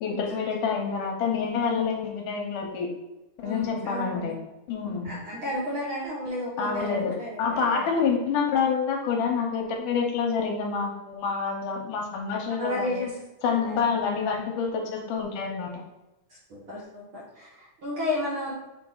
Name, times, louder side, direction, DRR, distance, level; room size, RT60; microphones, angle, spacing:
voice 1, 0.0-2.9 3.4-4.3 4.7-5.2 6.6-7.1 7.4-13.0 13.4-15.8, left 5 dB, 75° left, 1 dB, 2.4 m, -27 dB
voice 2, 3.4-4.4 4.9-8.0 12.6-13.1 13.6-14.0 16.3-18.5, left 1 dB, 50° right, -6 dB, 1.7 m, -33 dB
6.8 x 4.0 x 3.9 m, 0.99 s
omnidirectional pair, 3.8 m